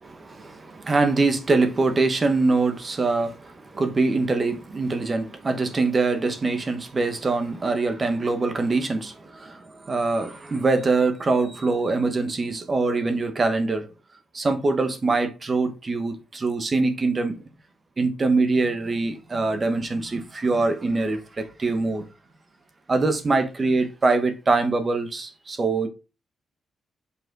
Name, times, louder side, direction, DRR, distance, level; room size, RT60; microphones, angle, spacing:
voice 1, 0.0-13.9 14.3-17.4 18.0-22.0 22.9-25.9, right 3 dB, 25° right, 1.3 m, -23 dB
7.0 x 5.6 x 3.8 m
wide cardioid pair, 155°, 0 cm